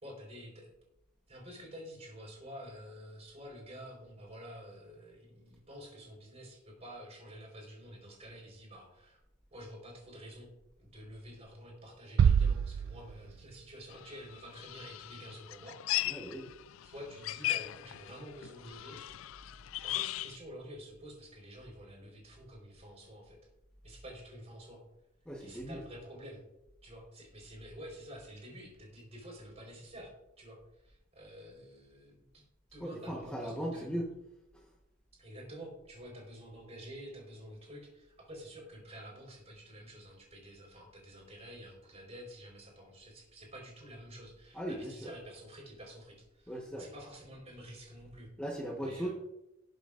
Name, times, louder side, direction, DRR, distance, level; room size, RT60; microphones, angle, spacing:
voice 1, 0.0-0.7 1.3-9.2 9.5-10.5 10.8-15.8 16.8-19.0 19.8-23.4 23.8-24.8 25.4-26.4 26.8-30.1 30.4-32.4 32.7-33.9 35.2-46.5 46.8-48.3 48.8-49.1, equal, 30° right, -1 dB, 4.3 m, -49 dB
sound 1, 12.2-13.8, right 7 dB, 80° right, 0.3 m, -27 dB
sound 2, 13.9-20.4, left 15 dB, 75° left, 0.3 m, -38 dB
voice 2, 16.0-16.5 25.2-25.8 32.8-34.1 34.5-34.7 44.5-45.1 46.5-46.9 48.4-49.1, right 1 dB, 5° left, -2 dB, 1.1 m, -38 dB
19.5 x 7.9 x 2.5 m, 0.90 s
head